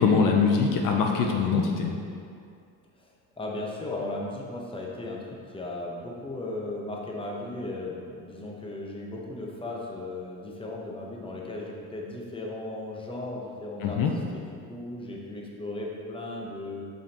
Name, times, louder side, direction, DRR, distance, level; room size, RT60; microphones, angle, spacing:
voice 1, 0.0-2.0 13.8-14.1, left 5 dB, 60° left, 2 dB, 0.7 m, -23 dB
voice 2, 3.4-5.2 5.5-14.0 14.3-16.8, left 2 dB, 15° left, -2 dB, 1.0 m, -36 dB
7.1 x 5.4 x 2.9 m, 2.4 s
cardioid pair, 110°, 36 cm